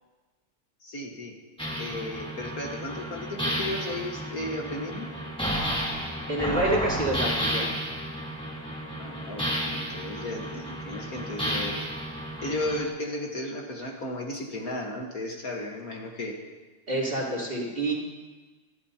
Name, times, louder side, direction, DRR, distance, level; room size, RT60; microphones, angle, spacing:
voice 1, 0.8-1.4 1.8-5.1 9.0-11.9 12.4-16.4, left 1 dB, 45° left, 1 dB, 1.7 m, -34 dB
sound 1, 1.6-12.9, equal, 5° left, 1.9 m, -32 dB
voice 2, 6.3-7.7 16.9-17.9, right 1 dB, 25° right, -4 dB, 3.3 m, -27 dB
25.5 x 12.5 x 2.8 m, 1.3 s
omnidirectional pair, 2.4 m